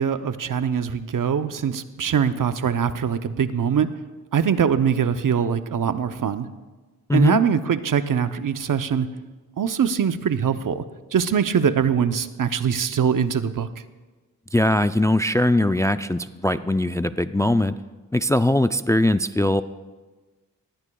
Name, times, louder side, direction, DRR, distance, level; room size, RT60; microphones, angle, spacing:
voice 1, 0.0-3.9 4.3-6.5 7.1-9.1 9.6-10.8 11.1-13.7, right 7 dB, 65° right, 11 dB, 0.7 m, -22 dB
voice 2, 7.1-7.4 14.5-17.7 18.1-19.6, left 1 dB, 10° left, 12 dB, 0.3 m, -20 dB
18.5 x 15.5 x 2.3 m, 1.3 s
cardioid pair, 60°, 35 cm